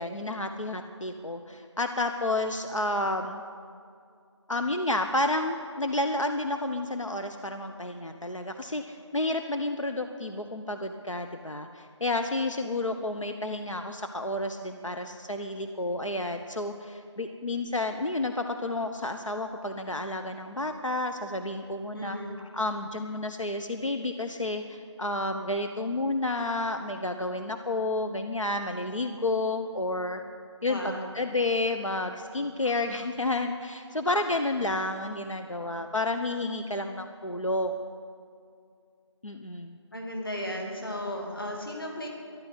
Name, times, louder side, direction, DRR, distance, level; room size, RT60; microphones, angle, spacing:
voice 1, 0.0-3.4 4.5-22.2 22.5-30.2 30.6-37.8 39.2-39.8, left 2 dB, 90° left, 6 dB, 1.0 m, -30 dB
voice 2, 22.0-22.4 30.6-31.1 39.9-42.1, left 1 dB, 45° left, 0 dB, 2.7 m, -35 dB
14.0 x 11.0 x 8.2 m, 2.3 s
figure-of-eight pair, 175°, 16 cm